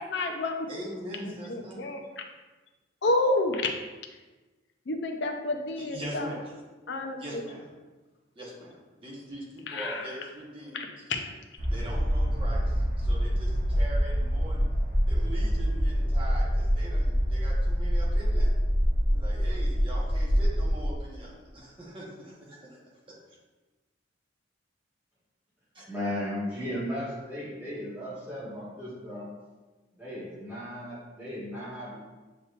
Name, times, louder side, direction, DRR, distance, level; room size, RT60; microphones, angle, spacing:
voice 1, 0.0-0.7 1.5-2.0 3.0-3.7 4.9-6.3 6.9-7.4 9.7-10.1 10.7-11.2, left 2 dB, 65° left, 4 dB, 0.5 m, -29 dB
voice 2, 0.7-1.8 5.8-6.5 7.2-7.7 8.3-11.0 11.7-14.7 15.0-18.5 19.1-22.8 23.1-23.2 25.7-25.8, right 1 dB, 25° right, -5 dB, 1.0 m, -42 dB
sound 1, 11.6-20.9, equal, 55° right, 1.4 m, -25 dB
voice 3, 25.9-29.3 29.9-32.0, left 1 dB, 10° right, -9 dB, 1.4 m, -36 dB
7.0 x 2.9 x 2.4 m, 1.2 s
head